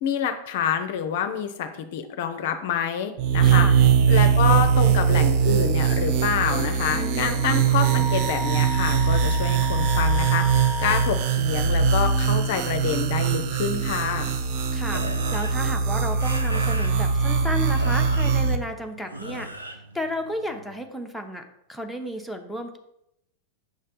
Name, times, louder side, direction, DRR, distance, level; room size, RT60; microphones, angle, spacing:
voice 1, 0.0-14.3, left 8 dB, 55° left, 8 dB, 0.5 m, -27 dB
sound 1, 3.2-18.6, right 6 dB, 45° right, 0.5 m, -21 dB
voice 2, 3.4-3.7 6.9-7.4 14.7-15.0 15.3-19.5 19.9-21.4 21.7-22.8, equal, ahead, 5 dB, 0.7 m, -33 dB
Wind instrument woodwind instrument, 6.8-11.2, left 1 dB, 30° right, 0.9 m, -34 dB
sound 2, 14.9-20.8, right 1 dB, 85° right, 0.6 m, -38 dB
6.5 x 3.2 x 5.2 m, 0.81 s
figure-of-eight pair, 90°, 0 cm